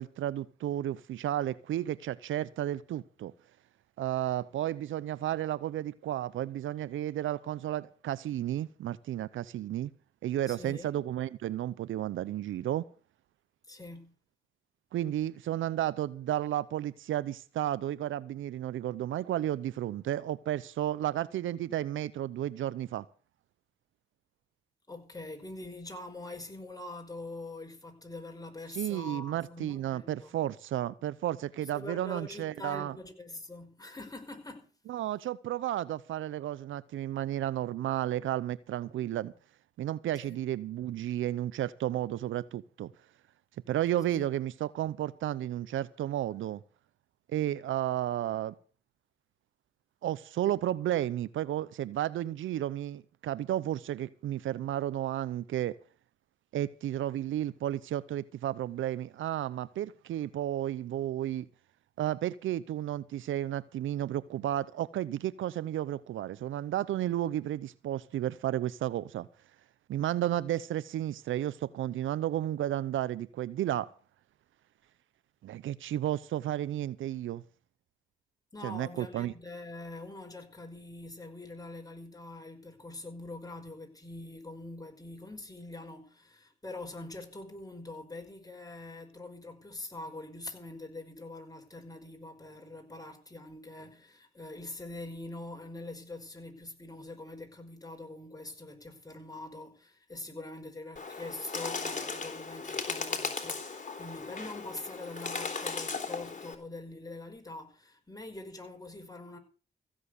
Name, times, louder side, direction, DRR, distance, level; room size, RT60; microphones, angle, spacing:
voice 1, 0.0-3.3 4.0-9.9 10.2-12.8 14.9-23.1 28.7-32.9 34.9-39.3 39.8-42.9 43.7-46.6 47.3-48.5 50.0-55.8 56.5-61.5 62.0-69.3 69.9-73.9 75.4-77.4 78.6-79.3, right 12 dB, 80° right, 0.7 m, -32 dB
voice 2, 10.5-10.9 13.7-14.1 24.9-30.3 31.6-34.7 40.2-40.4 44.1-44.3 78.5-109.4, left 2 dB, 20° left, 5.6 m, -44 dB
Bird, 101.0-106.6, left 4 dB, 40° left, 3.6 m, -37 dB
16.0 x 7.4 x 8.2 m
supercardioid pair, 50°, 20 cm